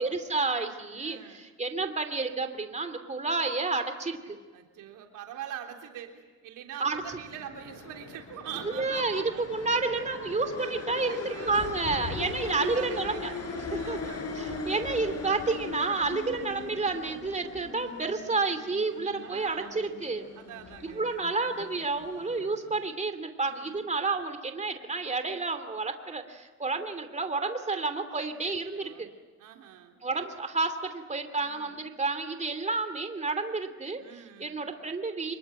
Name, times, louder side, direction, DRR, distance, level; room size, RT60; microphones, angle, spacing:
voice 1, 0.0-4.4 6.8-7.0 8.7-13.3 13.7-14.0 14.4-20.3 20.8-29.1 30.0-35.4, right 3 dB, 25° right, 8 dB, 2.9 m, -30 dB
voice 2, 1.0-1.5 4.5-9.5 11.0-14.7 19.2-19.8 20.3-21.1 23.4-23.8 28.1-29.1 29.4-30.0 31.4-31.9 34.0-34.6, right 9 dB, 85° right, 3 dB, 3.5 m, -45 dB
sound 1, 7.0-22.9, left 3 dB, 55° left, 6.1 m, -40 dB
26.0 x 22.5 x 9.1 m, 1.3 s
cardioid pair, 90°, 30 cm